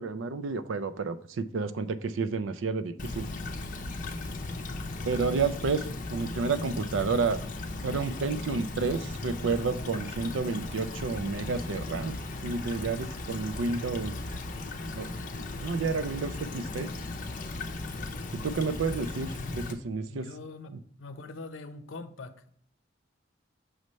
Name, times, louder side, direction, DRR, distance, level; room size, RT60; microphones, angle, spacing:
voice 1, 0.0-3.3 5.1-5.9 6.1-7.4 7.8-12.2 12.4-14.1 15.0-15.1 15.3-16.9 18.3-20.3 20.7-20.8, right 4 dB, 85° right, 12 dB, 0.5 m, -30 dB
Stream / Trickle dribble, 3.0-19.7, left 2 dB, 45° left, 0.5 m, -37 dB
voice 2, 20.0-20.7 21.0-22.5, left 3 dB, 85° left, 9 dB, 0.6 m, -43 dB
6.3 x 3.2 x 5.3 m, 0.62 s
head